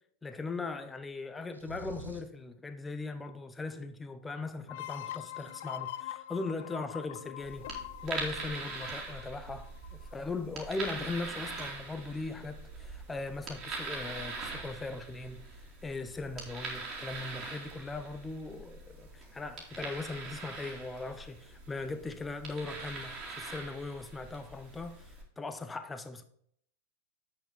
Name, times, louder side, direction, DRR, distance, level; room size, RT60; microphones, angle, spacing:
voice 1, 0.2-7.7 8.0-26.2, left 3 dB, 10° left, 0.8 m, -39 dB
sound 1, 1.5-2.4, right 1 dB, 85° right, 1.2 m, -46 dB
sound 2, 4.7-10.1, left 13 dB, 55° left, 0.4 m, -43 dB
sound 3, 7.4-25.2, right 3 dB, 35° right, 2.8 m, -43 dB
8.2 x 6.6 x 3.9 m
figure-of-eight pair, 90°, 0 cm